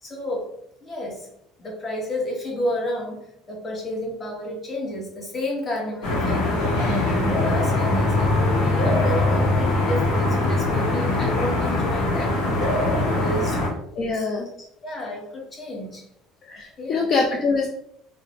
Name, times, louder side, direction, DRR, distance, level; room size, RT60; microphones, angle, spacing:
voice 1, 0.0-0.5 0.8-1.3 1.6-13.6 14.1-14.2 14.8-16.0 16.8-17.1, left 1 dB, 30° left, -1 dB, 1.0 m, -31 dB
sound 1, 6.0-13.7, left 2 dB, 75° left, 0.9 m, -22 dB
voice 2, 14.0-14.5 16.5-17.7, left 4 dB, 45° left, 0 dB, 0.4 m, -24 dB
2.4 x 2.1 x 3.0 m, 0.74 s
supercardioid pair, 85°, 0 cm